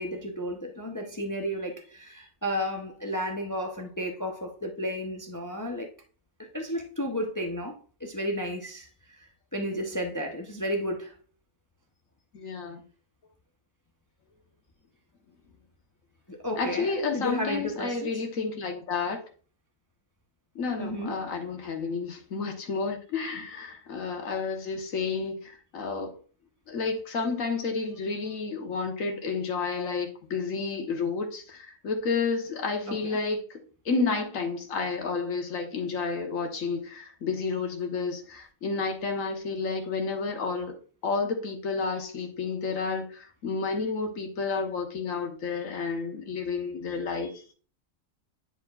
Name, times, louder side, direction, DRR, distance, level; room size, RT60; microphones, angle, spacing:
voice 1, 0.0-5.9 6.4-9.2 9.5-11.1 16.3-18.1 20.8-21.1 32.8-33.2, equal, 20° left, 0.6 m, -33 dB
voice 2, 12.3-12.8 16.6-19.2 20.5-26.1 26.7-33.6 33.8-40.7 41.0-47.5, left 4 dB, 70° left, 1.6 m, -31 dB
10.0 x 4.6 x 2.4 m
omnidirectional pair, 1.4 m